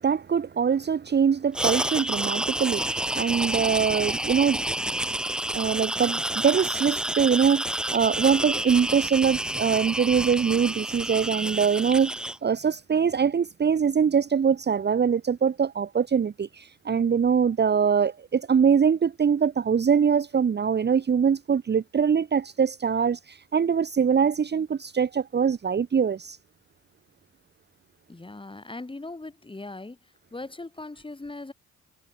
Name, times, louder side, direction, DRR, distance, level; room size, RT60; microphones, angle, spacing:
voice 1, 0.0-4.6 5.5-26.4, right 7 dB, 35° right, 1.1 m, -23 dB
sound 1, 1.5-12.4, right 1 dB, 5° right, 0.3 m, -29 dB
voice 2, 28.1-30.0 30.3-31.5, left 2 dB, 15° left, 6.1 m, -39 dB
cardioid pair, 90°, 30 cm